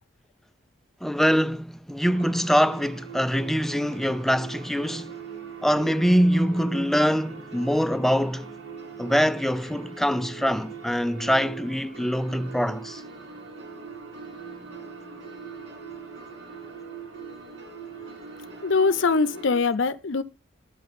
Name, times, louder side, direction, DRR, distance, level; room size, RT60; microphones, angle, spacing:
voice 1, 1.0-5.2 5.6-8.5 9.0-13.0, equal, ahead, 0.4 m, -24 dB
sound 1, 2.1-19.6, right 5 dB, 70° right, 6.7 m, -41 dB
voice 2, 18.6-20.2, left 4 dB, 65° left, 0.6 m, -22 dB
12.0 x 5.7 x 5.4 m
head